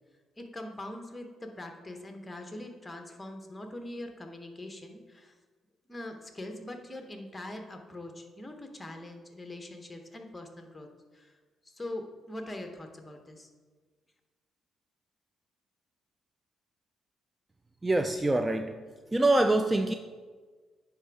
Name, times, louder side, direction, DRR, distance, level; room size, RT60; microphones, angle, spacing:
voice 1, 0.4-5.4 5.9-10.9 11.1-11.4 11.7-13.5, left 1 dB, 15° left, 4 dB, 1.0 m, -42 dB
voice 2, 17.8-18.8 19.1-20.0, right 2 dB, 15° right, 8 dB, 0.3 m, -25 dB
10.0 x 3.4 x 4.7 m, 1.4 s
cardioid pair, 90°, 0 cm